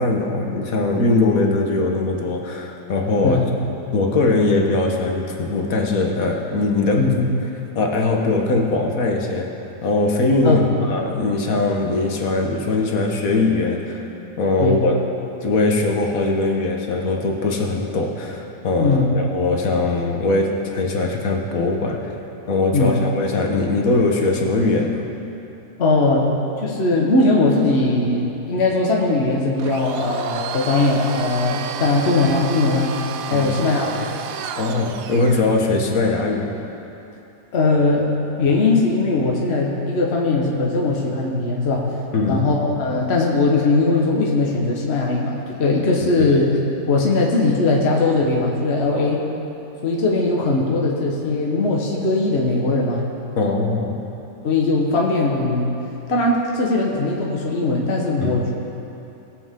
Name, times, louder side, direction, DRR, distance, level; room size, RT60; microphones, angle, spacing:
voice 1, 0.0-3.4 3.9-7.1 7.7-9.5 9.8-14.1 14.4-15.0 15.4-22.2 22.5-25.0 33.3-33.5 34.6-36.6 42.1-42.5 46.2-46.4 48.9-49.1 53.4-54.0 58.2-58.3, left 2 dB, 60° left, 1 dB, 1.5 m, -21 dB
voice 2, 7.0-7.3 10.4-10.7 14.6-14.8 18.8-19.1 22.7-22.9 25.8-33.0 33.3-34.1 37.5-38.1 38.4-41.9 42.3-46.5 46.9-49.2 49.8-53.0 54.4-55.8 56.1-58.5, left 3 dB, 40° left, -2 dB, 1.4 m, -19 dB
Domestic sounds home sounds, 29.6-35.5, right 8 dB, 70° right, 0.9 m, -32 dB
20.0 x 8.0 x 3.7 m, 2.9 s
omnidirectional pair, 1.8 m